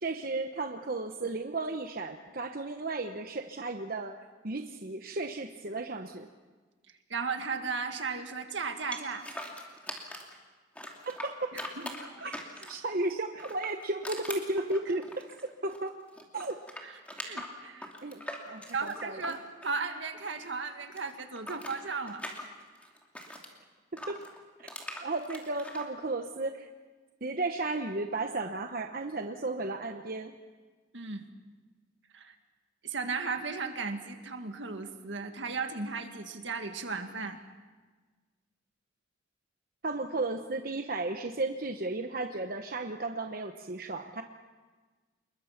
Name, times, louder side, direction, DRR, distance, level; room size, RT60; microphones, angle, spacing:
voice 1, 0.0-4.1 4.4-6.3 11.1-11.5 12.2-12.3 12.7-15.0 15.6-15.9 16.3-16.6 18.0-19.3 24.1-24.2 24.6-24.7 25.0-26.7 27.2-30.3 39.8-44.2, right 2 dB, 50° right, 5 dB, 1.0 m, -34 dB
voice 2, 7.1-9.3 11.5-12.3 12.6-12.7 16.8-17.0 17.2-17.9 18.7-22.2 30.9-31.3 32.1-32.4 32.8-37.4, right 4 dB, 75° right, 6 dB, 2.0 m, -36 dB
sound 1, 8.9-10.4 10.7-12.9 13.3-15.9 16.1-20.3 20.6-23.5 24.0-25.9, left 1 dB, 5° left, 2.6 m, -42 dB
27.5 x 21.5 x 5.9 m, 1.4 s
head